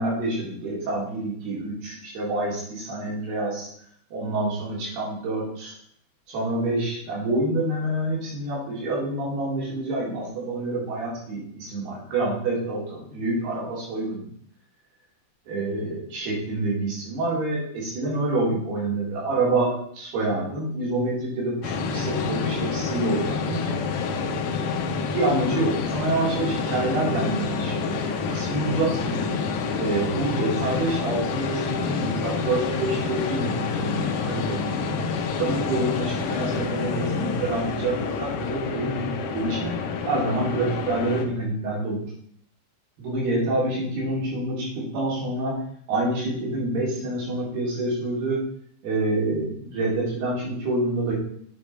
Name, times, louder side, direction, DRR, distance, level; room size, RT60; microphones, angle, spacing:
voice 1, 0.0-3.7 4.1-5.7 6.3-14.2 15.5-23.8 24.5-28.0 28.3-29.2 29.8-34.8 35.4-39.7 40.1-42.0 43.0-45.5 45.9-48.4 48.8-51.1, right 2 dB, 70° right, -4 dB, 5.1 m, -27 dB
sound 1, 21.6-41.3, left 5 dB, 80° left, 1.8 m, -28 dB
8.5 x 8.0 x 4.2 m, 0.64 s
omnidirectional pair, 4.8 m